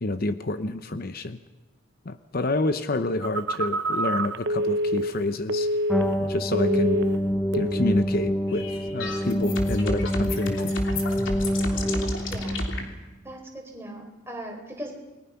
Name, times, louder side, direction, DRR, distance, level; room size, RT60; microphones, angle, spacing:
voice 1, 0.0-1.4 2.0-5.7 6.2-7.0 7.5-10.7, left 2 dB, 45° left, 10 dB, 0.8 m, -28 dB
Telephone, 3.2-6.3 6.5-7.2 7.5-7.8, equal, 55° right, 0.8 m, -27 dB
sound 1, 5.9-13.0, equal, 5° left, 0.8 m, -26 dB
sound 2, 8.5-12.8, left 1 dB, 65° left, 3.2 m, -31 dB
voice 2, 11.7-12.6 13.2-14.9, right 1 dB, 10° right, 1 dB, 4.3 m, -40 dB
29.0 x 21.0 x 5.8 m, 1.1 s
head